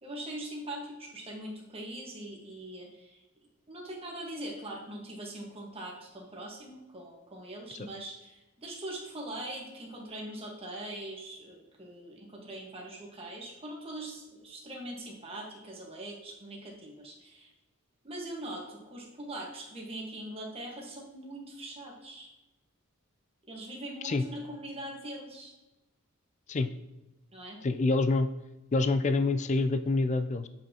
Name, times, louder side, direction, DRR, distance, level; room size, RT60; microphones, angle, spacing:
voice 1, 0.0-3.2 3.7-17.5 18.0-22.3 23.5-25.5 27.3-27.6, right 1 dB, 25° right, -2 dB, 1.4 m, -42 dB
voice 2, 27.6-28.3 28.7-30.5, left 3 dB, 35° left, 10 dB, 0.4 m, -26 dB
7.7 x 5.6 x 2.9 m, 1.0 s
head